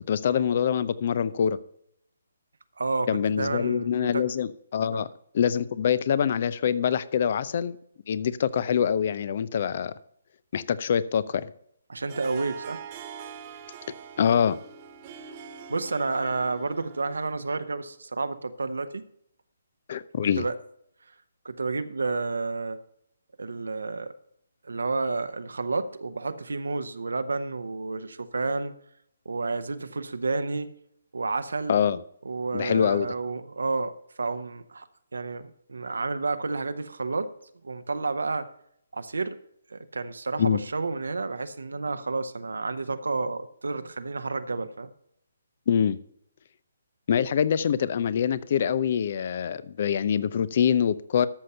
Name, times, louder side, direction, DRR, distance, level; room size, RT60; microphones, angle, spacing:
voice 1, 0.1-1.6 3.1-5.1 5.3-7.8 8.1-9.9 10.5-11.5 14.2-14.6 19.9-20.5 31.7-32.0 32.5-33.1 40.4-40.6 45.7-46.0 47.1-51.3, left 8 dB, 45° left, 17 dB, 0.6 m, -24 dB
voice 2, 2.8-4.2 4.9-5.1 11.9-12.8 15.7-19.0 20.4-20.5 21.4-22.8 23.4-24.1 24.6-28.7 29.2-30.8 31.1-31.7 32.2-37.3 37.6-38.5 38.9-39.4 39.7-44.9, right 3 dB, 75° right, 10 dB, 0.8 m, -30 dB
Harp, 12.1-17.6, right 7 dB, 35° right, 1.3 m, -43 dB
13.5 x 6.5 x 5.6 m, 0.69 s
figure-of-eight pair, 140°, 0 cm